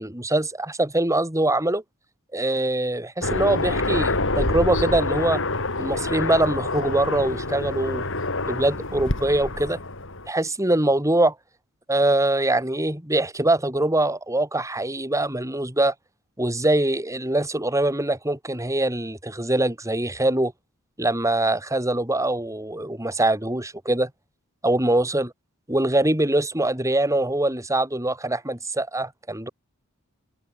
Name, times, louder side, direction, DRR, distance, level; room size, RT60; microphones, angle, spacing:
voice 1, 0.0-1.8 2.3-5.4 5.8-8.0 8.5-9.8 10.3-11.3 11.9-15.9 16.4-20.5 21.0-24.1 24.6-25.3 25.7-29.5, right 1 dB, 15° right, 5.0 m, -23 dB
Aircraft, 3.2-10.3, left 2 dB, 65° left, 5.3 m, -27 dB
head